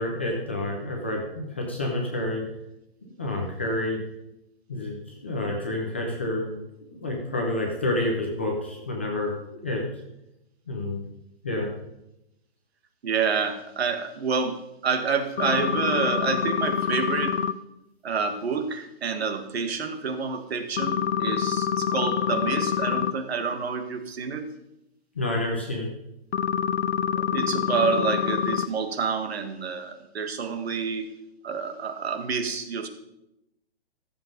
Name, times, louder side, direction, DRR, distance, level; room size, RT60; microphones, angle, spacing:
voice 1, 0.0-2.4 3.0-4.0 4.7-6.6 6.9-9.3 9.6-9.8 10.7-11.0 11.4-11.7 25.2-25.9, left 1 dB, 10° left, -1 dB, 0.5 m, -29 dB
voice 2, 13.0-17.4 18.0-24.5 27.1-31.1 31.4-32.9, right 5 dB, 70° right, 7 dB, 1.7 m, -28 dB
sound 1, 15.4-17.5 20.8-23.1 26.3-28.7, left 8 dB, 80° left, 0.7 m, -26 dB
14.0 x 7.3 x 5.2 m, 0.88 s
hypercardioid pair, 175°, 32 cm